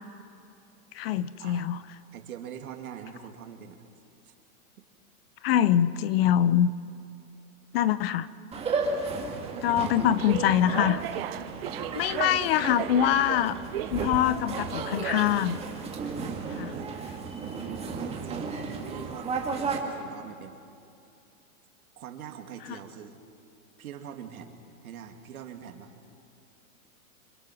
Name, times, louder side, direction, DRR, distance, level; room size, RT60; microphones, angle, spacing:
voice 1, 0.9-1.8 5.4-6.7 7.7-8.3 9.6-11.0 12.0-13.6 13.9-15.6 16.6-16.7, left 11 dB, 45° left, 16 dB, 0.7 m, -24 dB
voice 2, 2.1-3.8 4.2-4.3 4.8-4.9 9.5-10.0 16.0-16.9 18.0-20.6 22.0-23.2 23.8-25.9, right 8 dB, 75° right, 4 dB, 2.7 m, -43 dB
sound 1, 8.5-19.8, right 4 dB, 15° right, 2.1 m, -34 dB
sound 2, 10.0-16.8, right 14 dB, 45° right, 0.6 m, -37 dB
26.5 x 26.0 x 6.2 m, 2.6 s
supercardioid pair, 155°, 43 cm